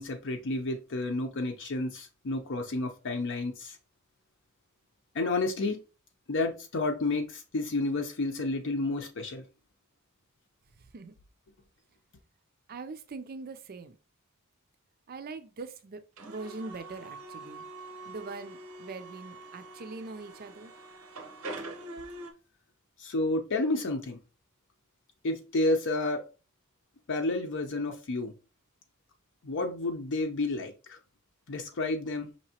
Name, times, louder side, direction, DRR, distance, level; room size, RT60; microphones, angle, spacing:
voice 1, 0.0-3.8 5.1-5.8 6.3-9.4 23.0-24.2 25.2-26.2 27.1-28.3 29.4-31.0 31.5-32.3, left 2 dB, 60° left, 0.6 m, -30 dB
voice 2, 12.7-14.0 15.1-16.0 16.2-17.7 18.0-20.7, right 3 dB, 45° right, 0.5 m, -42 dB
sound 1, 16.2-22.3, right 2 dB, 90° right, 1.0 m, -44 dB
5.3 x 2.9 x 2.8 m
head